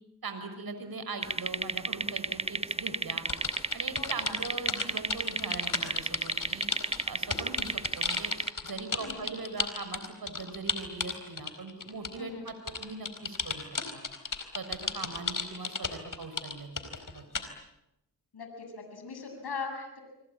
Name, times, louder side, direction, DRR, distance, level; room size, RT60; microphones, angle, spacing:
voice 1, 0.2-3.3 3.7-6.7 7.1-8.3 8.6-13.7 13.9-14.0 14.5-17.2, right 3 dB, 60° right, 8 dB, 6.1 m, -40 dB
sound 1, 1.2-8.5, right 2 dB, 15° right, 1.2 m, -32 dB
sound 2, 3.2-12.2 12.5-17.5, left 4 dB, 50° left, 4.4 m, -34 dB
voice 2, 4.0-4.4 9.0-9.2 12.2-12.4 14.8-15.0 18.3-20.0, left 4 dB, 65° left, 4 dB, 7.8 m, -40 dB
25.5 x 24.5 x 8.8 m, 0.86 s
supercardioid pair, 40°, 41 cm